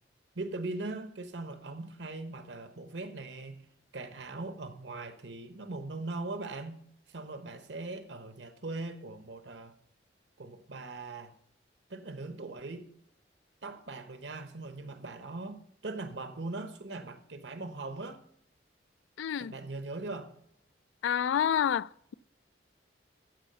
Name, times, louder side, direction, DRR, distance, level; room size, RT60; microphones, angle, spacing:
voice 1, 0.3-3.7 3.9-6.8 7.1-9.7 10.4-11.3 11.9-12.9 13.6-18.2 19.4-20.3, right 2 dB, 70° right, 1.1 m, -40 dB
voice 2, 19.2-19.5 21.0-22.1, left 9 dB, 85° left, 0.3 m, -28 dB
14.0 x 4.8 x 6.8 m
head